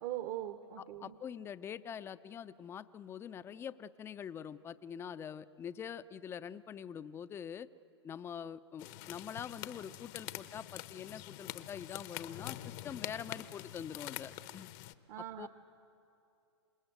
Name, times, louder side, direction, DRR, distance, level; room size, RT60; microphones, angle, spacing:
voice 1, 0.0-1.2 15.1-15.5, right 13 dB, 45° right, 9 dB, 1.1 m, -41 dB
voice 2, 0.8-7.7 8.0-14.7 15.4-15.5, left 8 dB, 15° left, 14 dB, 0.5 m, -45 dB
sound 1, 8.8-14.9, left 15 dB, 40° left, 0.8 m, -45 dB
27.0 x 19.5 x 9.2 m, 2.7 s
hypercardioid pair, 120°, 15 cm